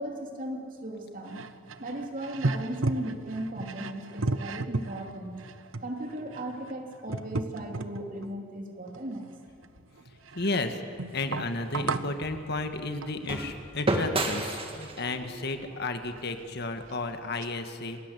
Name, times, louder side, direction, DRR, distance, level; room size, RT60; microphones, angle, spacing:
voice 1, 0.0-1.4 1.8-5.4 5.8-9.3, right 1 dB, 45° right, 2 dB, 3.3 m, -36 dB
sound 1, 1.3-8.3 8.9-10.6 11.0-12.2 13.0-13.3 15.7-15.8 16.0-16.2 16.9-17.0 17.4-17.5, right 3 dB, 90° right, 1.0 m, -34 dB
voice 2, 10.3-10.8 11.1-18.0, left 2 dB, 55° left, 7 dB, 1.8 m, -33 dB
sound 2, 11.1-17.2, right 1 dB, 30° right, 2.2 m, -34 dB
27.5 x 20.0 x 8.4 m, 2.3 s
head